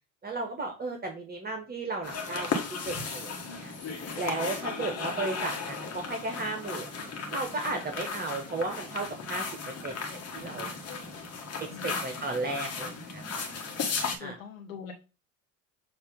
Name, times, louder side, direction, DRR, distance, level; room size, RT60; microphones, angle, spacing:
voice 1, 0.2-2.6 2.8-3.7 4.1-6.9 7.3-9.4 9.8-9.9 10.3-10.7 11.8-13.4 14.2-14.4, right 3 dB, 25° right, 3 dB, 1.4 m, -34 dB
sound 1, 2.0-14.2, left 4 dB, 35° left, 1.6 m, -35 dB
voice 2, 11.7-12.0 14.0-14.9, left 6 dB, 75° left, 1 dB, 1.1 m, -43 dB
7.2 x 2.9 x 5.3 m, 0.31 s
figure-of-eight pair, 65°, 41 cm